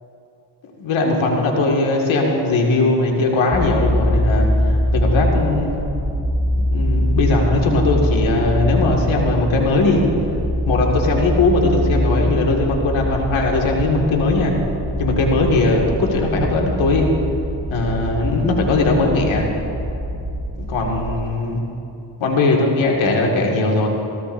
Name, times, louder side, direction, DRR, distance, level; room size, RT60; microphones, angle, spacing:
voice 1, 0.8-5.8 6.6-10.1 10.7-14.5 15.0-17.1 17.7-19.5 20.7-21.6 22.2-23.9, left 2 dB, 85° left, 0 dB, 2.0 m, -19 dB
sound 1, 3.5-21.2, equal, 5° left, 2.1 m, -23 dB
17.5 x 15.5 x 2.6 m, 2.8 s
cardioid pair, 55°, 46 cm